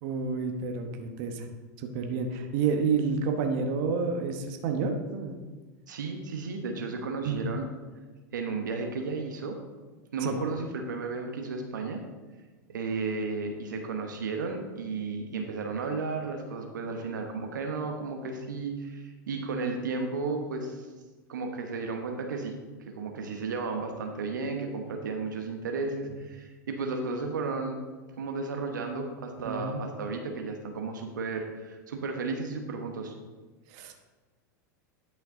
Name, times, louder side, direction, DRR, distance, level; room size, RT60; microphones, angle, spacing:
voice 1, 0.0-1.5 1.8-5.4 7.2-7.4 10.2-10.4 29.4-29.8 33.7-34.0, right 5 dB, 60° right, 4 dB, 1.1 m, -29 dB
voice 2, 5.9-7.7 8.3-9.6 10.1-12.0 12.7-20.9 21.3-22.5 22.8-27.8 28.2-33.1, right 4 dB, 90° right, 3 dB, 1.1 m, -33 dB
10.5 x 5.8 x 3.8 m, 1.3 s
hypercardioid pair, 105°, 10 cm